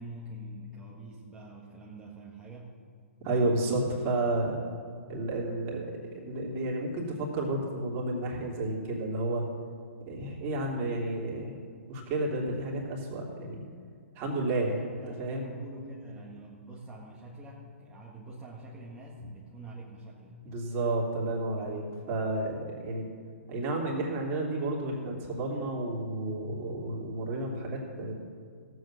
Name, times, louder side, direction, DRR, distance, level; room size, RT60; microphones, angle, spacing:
voice 1, 0.0-2.8 14.5-20.5, right 1 dB, 10° right, -6 dB, 1.7 m, -45 dB
voice 2, 3.2-4.6 5.1-9.4 10.0-11.6 11.9-13.6 14.1-14.8 15.2-15.5 19.2-19.3 20.4-23.1 23.5-28.1, right 2 dB, 35° right, -2 dB, 3.1 m, -31 dB
15.5 x 8.0 x 6.4 m, 2.1 s
hypercardioid pair, 130°, 8 cm